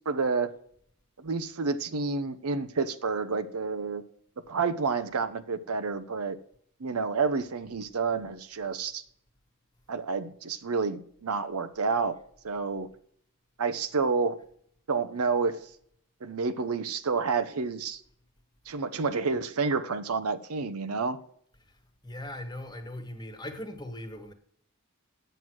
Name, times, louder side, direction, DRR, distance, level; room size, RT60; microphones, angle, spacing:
voice 1, 0.1-0.5 1.2-4.0 4.5-6.4 6.8-9.0 9.9-12.1 12.4-12.9 13.6-14.4 14.9-15.6 16.2-18.0 18.7-21.2, right 4 dB, 85° right, 0.7 m, -29 dB
voice 2, 21.6-24.3, left 1 dB, 20° left, 1.3 m, -40 dB
9.0 x 7.9 x 6.1 m
head